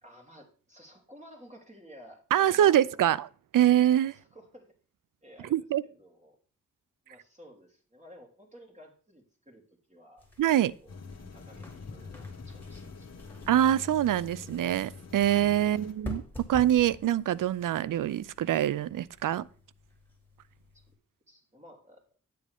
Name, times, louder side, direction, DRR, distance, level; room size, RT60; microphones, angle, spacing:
voice 1, 0.0-3.2 4.1-4.7 5.2-6.4 7.1-10.3 10.6-11.0 11.3-13.1 15.6-15.9 21.3-22.0, equal, 20° right, 3.1 m, -53 dB
voice 2, 2.3-3.2 3.5-4.1 5.5-5.8 10.4-10.7 13.5-16.2 16.5-19.4, right 11 dB, 80° right, 0.5 m, -24 dB
sound 1, 10.2-20.9, left 1 dB, 5° left, 2.5 m, -48 dB
sound 2, 10.9-15.9, left 4 dB, 55° left, 1.2 m, -45 dB
9.2 x 7.6 x 3.5 m
cardioid pair, 50°, 32 cm